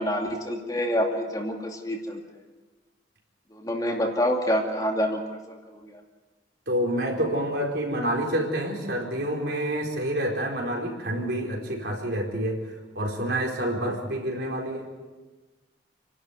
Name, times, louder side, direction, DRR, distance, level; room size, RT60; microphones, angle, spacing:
voice 1, 0.0-2.2 3.6-5.6 5.8-6.0, equal, 20° left, 1 dB, 2.5 m, -27 dB
voice 2, 6.7-12.6 12.9-14.9, right 1 dB, 60° right, 0 dB, 4.4 m, -28 dB
29.0 x 12.0 x 9.4 m, 1.3 s
head